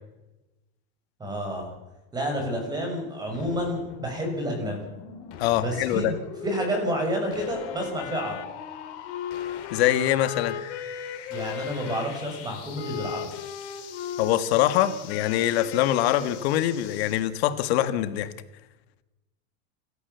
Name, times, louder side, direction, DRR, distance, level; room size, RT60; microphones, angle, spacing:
voice 1, 1.2-1.7 2.1-4.8 5.6-6.2 6.4-8.4 11.3-13.3, equal, 10° right, 2 dB, 6.8 m, -29 dB
sound 1, 3.3-17.3, left 8 dB, 45° left, 4.2 m, -43 dB
voice 2, 5.4-6.1 9.7-10.6 14.2-18.3, left 13 dB, 65° left, 11 dB, 2.0 m, -24 dB
Wind instrument woodwind instrument, 7.4-12.1 12.7-16.7, left 9 dB, 85° left, 4.6 m, -37 dB
28.5 x 13.5 x 7.1 m, 1.0 s
supercardioid pair, 165°, 34 cm